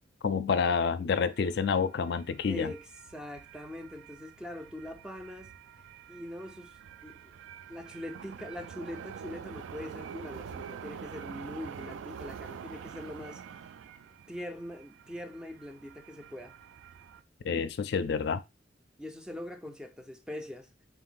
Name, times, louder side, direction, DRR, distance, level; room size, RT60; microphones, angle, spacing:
voice 1, 0.2-2.7 17.4-18.4, left 5 dB, 60° left, 0.4 m, -28 dB
sound 1, 1.3-17.2, right 7 dB, 85° right, 0.3 m, -46 dB
voice 2, 2.4-2.8 3.1-5.5 6.1-7.2 7.7-13.4 14.3-16.5 19.0-20.7, left 1 dB, 5° right, 0.4 m, -42 dB
4.0 x 2.5 x 3.8 m
head